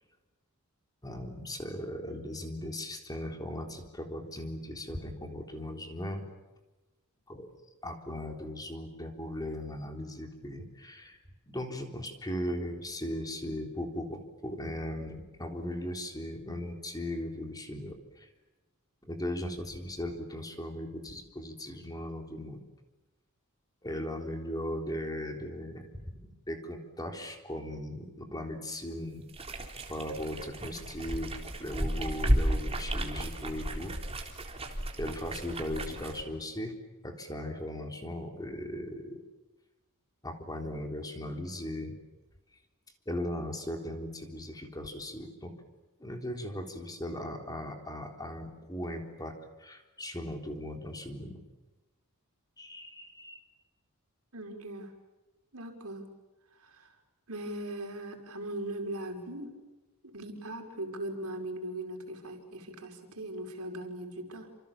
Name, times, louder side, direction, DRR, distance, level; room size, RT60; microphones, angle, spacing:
voice 1, 1.0-6.3 7.3-7.5 7.8-11.2 11.5-18.3 19.1-22.6 23.8-29.3 29.9-31.3 31.6-34.3 35.0-36.7 37.0-39.2 40.2-42.0 43.1-45.5 46.0-51.4 52.6-53.4, left 1 dB, 15° left, 4 dB, 3.8 m, -38 dB
sound 1, 29.3-36.2, right 1 dB, 25° right, 3.8 m, -33 dB
voice 2, 54.3-54.9 55.5-56.1 56.5-57.0 57.3-59.6 60.0-64.6, right 1 dB, 75° right, 4 dB, 5.4 m, -39 dB
29.0 x 27.5 x 7.3 m, 1.1 s
head